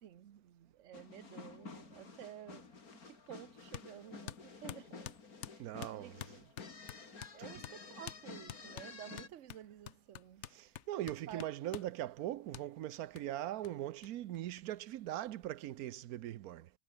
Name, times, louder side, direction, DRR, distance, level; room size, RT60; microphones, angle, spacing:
voice 1, 0.0-5.2 5.5-5.6 5.9-6.2 7.3-10.4 11.3-11.5, right 11 dB, 60° right, 1.2 m, -52 dB
sound 1, 0.9-9.3, left 4 dB, 90° left, 3.1 m, -51 dB
sound 2, 3.7-3.9 4.3-7.4 7.6-7.8 8.1-8.2 8.5-11.9 12.5-12.7 13.2-13.3 13.6-13.7 14.0-14.1 14.3-15.1, left 10 dB, 60° left, 1.0 m, -48 dB
voice 2, 5.6-6.4 10.5-16.7, right 13 dB, 90° right, 1.2 m, -41 dB
omnidirectional pair, 1.5 m